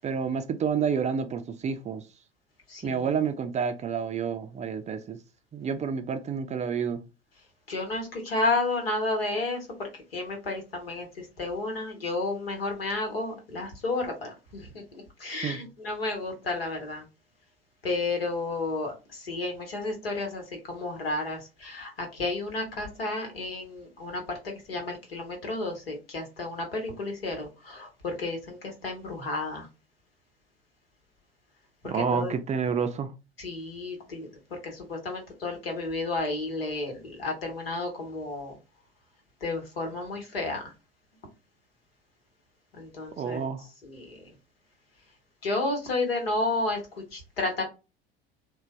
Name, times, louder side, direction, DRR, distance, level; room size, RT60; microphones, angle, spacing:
voice 1, 0.0-2.0 2.8-5.2 5.5-7.0 15.4-15.6 31.8-33.1 43.2-43.6, right 6 dB, 25° right, 0.4 m, -29 dB
voice 2, 2.7-3.2 7.7-17.0 17.8-29.7 32.1-32.4 33.4-34.3 34.6-38.6 39.4-40.7 42.7-43.5 43.8-44.3 45.4-47.6, left 2 dB, 75° left, 1.3 m, -32 dB
3.8 x 2.3 x 3.2 m
figure-of-eight pair, 65°, 30 cm